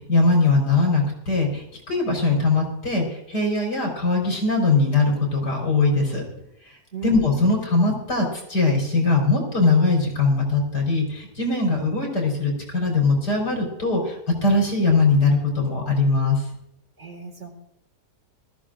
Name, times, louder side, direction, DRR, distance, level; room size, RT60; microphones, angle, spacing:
voice 1, 0.1-6.2 7.0-16.4, left 3 dB, 75° left, -1 dB, 4.8 m, -21 dB
voice 2, 6.9-7.6 17.0-17.5, right 3 dB, 45° right, 3 dB, 2.4 m, -36 dB
20.0 x 14.0 x 2.5 m, 0.79 s
omnidirectional pair, 1.8 m